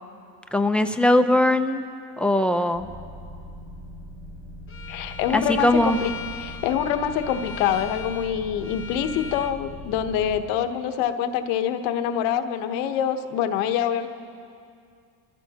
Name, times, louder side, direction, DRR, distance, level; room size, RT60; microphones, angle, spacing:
voice 1, 0.5-1.8 2.2-2.9 5.3-6.0, left 1 dB, ahead, 7 dB, 0.6 m, -20 dB
deep cavern, 2.7-10.4, left 1 dB, 55° right, 3.9 m, -41 dB
Bowed string instrument, 4.7-9.6, left 5 dB, 30° left, 0.9 m, -39 dB
voice 2, 4.9-14.1, left 9 dB, 80° left, 8 dB, 1.1 m, -25 dB
24.5 x 14.5 x 2.9 m, 2.4 s
supercardioid pair, 105°, 45 cm